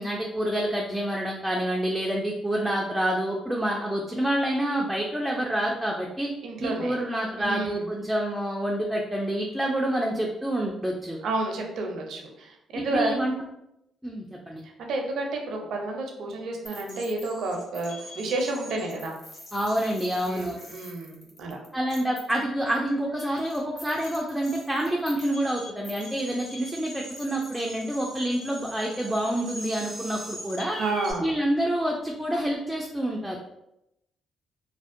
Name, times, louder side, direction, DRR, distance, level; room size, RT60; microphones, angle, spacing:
voice 1, 0.0-6.3 6.6-11.2 12.7-13.3 14.0-14.6 19.5-20.6 21.7-30.8 31.2-33.4, right 1 dB, 5° right, -1 dB, 0.3 m, -27 dB
voice 2, 6.4-7.0 7.4-7.9 11.2-13.1 14.8-19.1 20.2-21.6 30.8-31.3, right 2 dB, 70° right, 1 dB, 0.5 m, -30 dB
sound 1, 16.6-31.1, equal, 45° left, 1.2 m, -43 dB
2.6 x 2.0 x 2.4 m, 0.85 s
cardioid pair, 90°, 0 cm